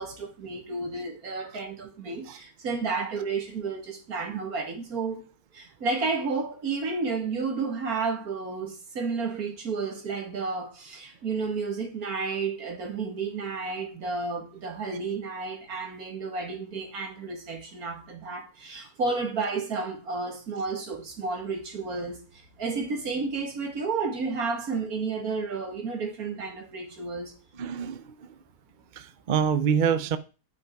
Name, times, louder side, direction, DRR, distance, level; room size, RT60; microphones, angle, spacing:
voice 1, 0.0-5.2 5.5-27.3, right 4 dB, 75° right, 2.4 m, -31 dB
voice 2, 27.5-28.4 28.9-30.2, right 7 dB, 45° right, 0.6 m, -27 dB
9.2 x 5.9 x 4.6 m
omnidirectional pair, 1.6 m